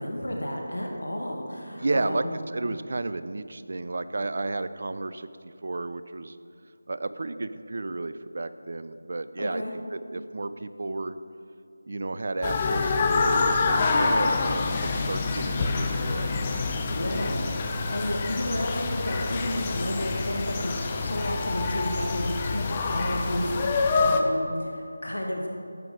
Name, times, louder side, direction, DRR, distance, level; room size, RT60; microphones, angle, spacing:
voice 1, 0.0-2.4 9.4-9.7 16.9-25.5, equal, 80° left, 0 dB, 1.3 m, -32 dB
voice 2, 1.8-6.4 6.9-9.6 9.9-11.2 11.9-16.5, right 2 dB, 50° right, 12 dB, 0.4 m, -32 dB
sound 1, 12.4-24.2, left 3 dB, 20° left, 0.5 m, -26 dB
10.5 x 7.3 x 3.6 m, 2.5 s
figure-of-eight pair, 165°, 0 cm